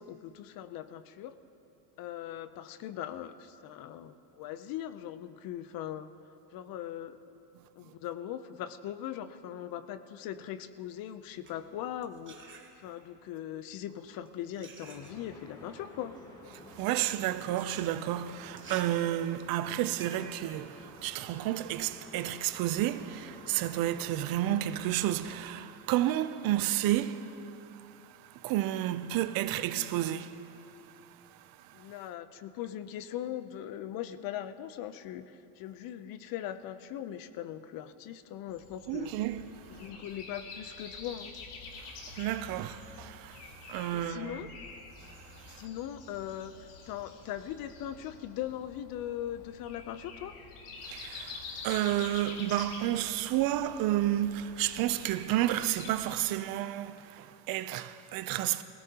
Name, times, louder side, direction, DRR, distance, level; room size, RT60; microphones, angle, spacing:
voice 1, 0.0-1.3 2.0-6.1 6.5-7.2 7.8-12.5 12.8-16.2 31.7-39.1 39.8-41.3 43.9-44.5 45.6-50.3, left 11 dB, 55° left, 0.7 m, -40 dB
sound 1, 11.2-13.2 13.9-21.8, right 5 dB, 30° right, 1.3 m, -52 dB
sound 2, 14.8-25.4, equal, 10° left, 2.9 m, -52 dB
voice 2, 16.5-31.9 38.9-39.9 41.8-44.4 45.0-45.7 50.8-58.6, right 13 dB, 60° right, 0.6 m, -32 dB
Breathing, 38.5-56.3, left 4 dB, 85° left, 1.8 m, -47 dB
19.5 x 17.5 x 2.9 m
cardioid pair, 130°, 41 cm